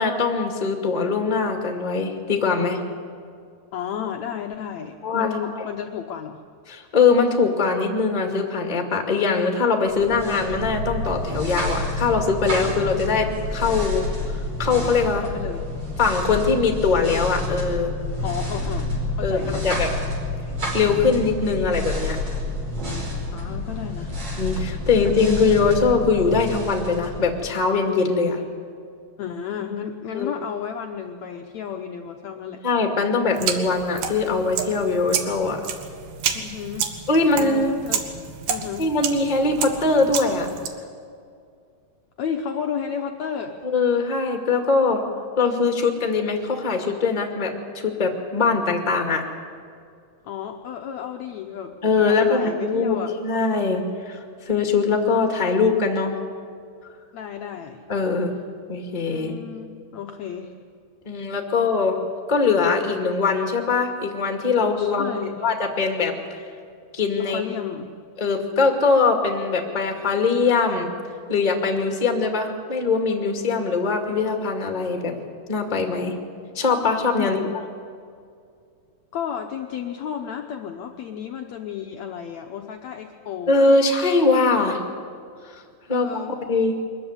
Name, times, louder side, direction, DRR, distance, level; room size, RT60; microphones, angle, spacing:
voice 1, 0.0-2.8 5.0-5.3 5.5-5.6 6.7-14.0 14.6-15.2 16.0-17.9 19.2-19.9 20.7-22.2 24.4-28.4 30.1-30.3 32.6-35.7 37.1-37.7 38.8-40.5 43.6-45.0 45.4-49.3 51.8-56.1 57.9-58.3 58.7-59.3 61.0-62.0 62.3-65.1 65.4-66.4 66.9-67.4 68.2-70.9 71.3-75.1 75.5-76.1 76.5-77.4 83.5-84.8 85.9-86.2 86.5-86.7, left 4 dB, 20° left, 3 dB, 1.3 m, -22 dB
voice 2, 3.7-6.4 15.2-15.7 18.2-19.9 23.3-24.1 29.2-32.6 36.3-36.9 37.3-38.0 38.5-38.9 42.2-43.6 50.2-51.7 52.0-53.1 57.1-57.8 59.1-60.5 64.8-65.4 67.2-67.9 77.2-77.5 79.1-83.6 85.9-86.4, left 8 dB, 85° left, 3 dB, 1.5 m, -32 dB
sound 1, 9.9-27.7, left 2 dB, 40° right, 6.5 m, -29 dB
sound 2, 33.4-40.7, right 7 dB, 80° right, 3.3 m, -30 dB
23.5 x 14.5 x 9.8 m, 2.3 s
omnidirectional pair, 4.6 m